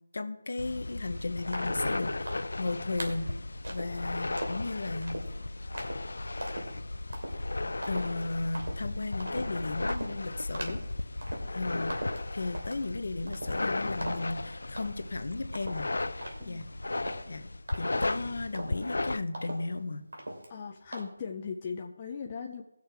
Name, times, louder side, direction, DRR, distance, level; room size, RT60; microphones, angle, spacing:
voice 1, 0.1-3.3 3.7-5.2 7.3-7.4 7.9-10.8 11.5-11.9 12.3-15.9 16.5-16.7 17.2-17.5 17.8-20.0, left 3 dB, 50° left, 8 dB, 0.9 m, -35 dB
sound 1, 0.6-19.2, left 2 dB, 70° left, 0.5 m, -35 dB
sound 2, 1.5-1.9 2.3-2.6 3.0-3.3 3.6-4.0 4.4-4.7 5.0-5.3 5.7-6.0 6.4-6.7 7.1-7.4 7.8-8.2 8.6-8.9 9.2-9.5 9.9-10.2 10.5-10.9 11.2-11.6 11.9-12.9 13.3-13.7 14.0-14.4 14.8-15.2 15.5-18.2 18.5-18.9 19.3-19.8 20.1-20.6 20.9-21.0, right 1 dB, 85° right, 2.8 m, -40 dB
voice 2, 20.5-22.6, left 6 dB, 15° left, 1 dB, 0.4 m, -39 dB
18.5 x 6.5 x 3.5 m, 0.93 s
figure-of-eight pair, 180°, 0 cm